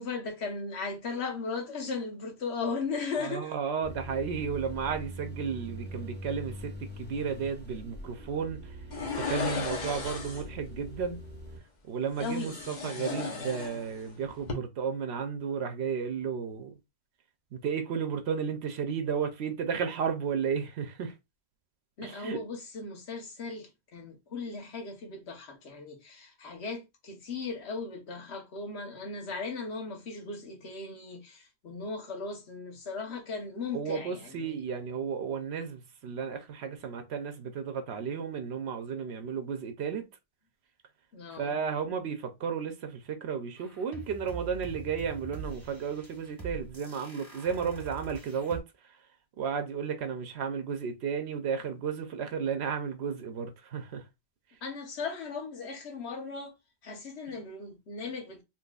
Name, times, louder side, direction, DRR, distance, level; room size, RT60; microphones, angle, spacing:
voice 1, 0.0-3.5 12.2-12.6 22.0-34.6 41.1-41.6 54.6-56.5 56.8-58.4, left 4 dB, 85° left, 1.2 m, -37 dB
voice 2, 3.2-8.8 9.2-11.2 11.9-16.8 17.5-21.1 22.0-22.4 33.7-40.1 41.4-49.0 49.4-54.0 57.3-57.4, right 6 dB, 85° right, 0.9 m, -33 dB
sound 1, 3.8-11.6, equal, 10° left, 1.0 m, -43 dB
sound 2, 8.9-10.6 12.1-14.1 14.4-14.5, left 5 dB, 45° left, 1.0 m, -35 dB
sound 3, 43.6-48.6, right 4 dB, 20° right, 1.1 m, -44 dB
3.9 x 2.9 x 2.3 m
omnidirectional pair, 1.1 m